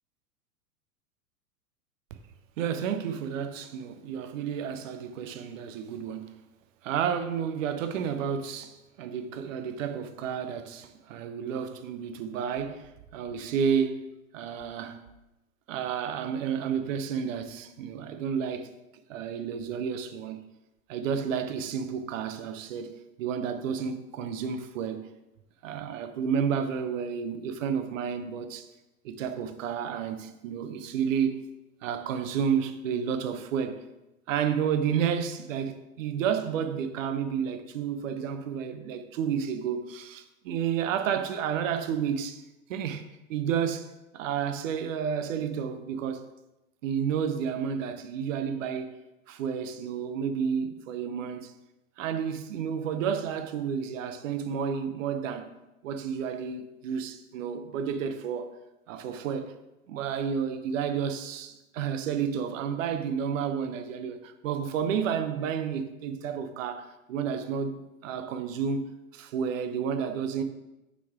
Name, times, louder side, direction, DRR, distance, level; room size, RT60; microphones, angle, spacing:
voice 1, 2.6-6.3 6.8-14.0 14.3-15.0 15.7-18.7 19.1-20.4 20.9-22.9 23.2-25.1 25.6-28.7 29.0-31.4 31.8-33.8 34.3-42.4 42.7-43.9 44.1-46.3 46.8-48.9 49.3-51.5 52.0-55.5 55.8-58.5 58.9-59.5 59.9-70.4, right 7 dB, 60° right, 0.7 m, -31 dB
5.8 x 4.2 x 4.8 m
figure-of-eight pair, 95°, 45 cm